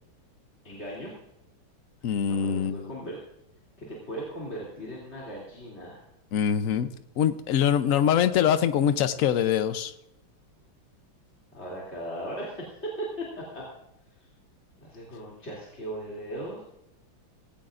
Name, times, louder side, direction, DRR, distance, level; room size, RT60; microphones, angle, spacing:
voice 1, 0.6-1.1 2.0-3.2 3.8-6.0 11.5-13.3 13.5-13.6 14.2-14.3 14.8-16.6, right 1 dB, 30° left, -5 dB, 3.1 m, -38 dB
voice 2, 2.0-2.9 6.3-6.9 7.2-9.9, left 9 dB, 60° left, 11 dB, 0.9 m, -24 dB
18.0 x 16.5 x 2.5 m, 0.84 s
omnidirectional pair, 2.2 m